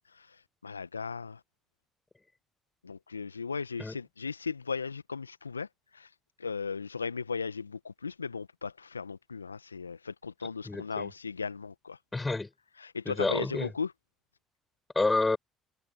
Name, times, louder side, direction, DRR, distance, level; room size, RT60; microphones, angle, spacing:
voice 1, 0.0-1.4 2.8-6.1 6.4-12.0 12.8-13.9, left 5 dB, 85° left, 1.4 m, -37 dB
voice 2, 10.7-11.1 12.1-12.5 13.1-13.7 14.9-15.4, left 3 dB, 20° left, 5.9 m, -29 dB
figure-of-eight pair, 50°, 0 cm